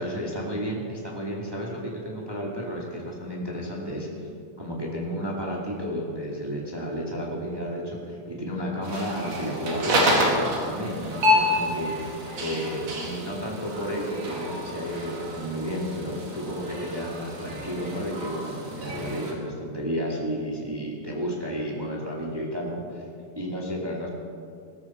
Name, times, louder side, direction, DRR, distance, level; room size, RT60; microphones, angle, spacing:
voice 1, 0.0-4.1 4.6-10.1 10.6-23.0 23.3-24.1, equal, 10° right, -3 dB, 1.2 m, -32 dB
sound 1, 8.8-19.3, left 1 dB, 55° right, 3.1 m, -28 dB
17.5 x 13.5 x 4.3 m, 2.4 s
omnidirectional pair, 3.9 m